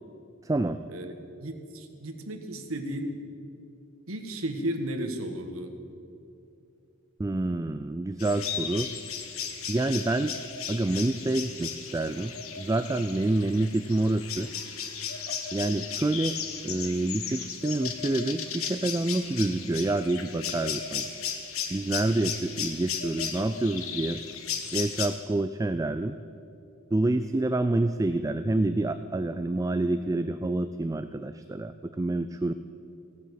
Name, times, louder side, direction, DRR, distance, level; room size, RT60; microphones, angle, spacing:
voice 1, 0.4-0.8 7.2-8.9 9.7-10.3 10.7-12.3 12.6-14.5 15.5-16.4 16.6-21.1 21.7-24.2 24.7-26.2 26.9-32.5, right 2 dB, 15° right, 10 dB, 0.3 m, -27 dB
voice 2, 1.4-3.1 4.1-5.7, right 1 dB, 75° right, 6 dB, 1.5 m, -34 dB
sound 1, 8.2-25.1, left 7 dB, 75° left, 1.4 m, -35 dB
16.5 x 9.6 x 8.2 m, 2.7 s
head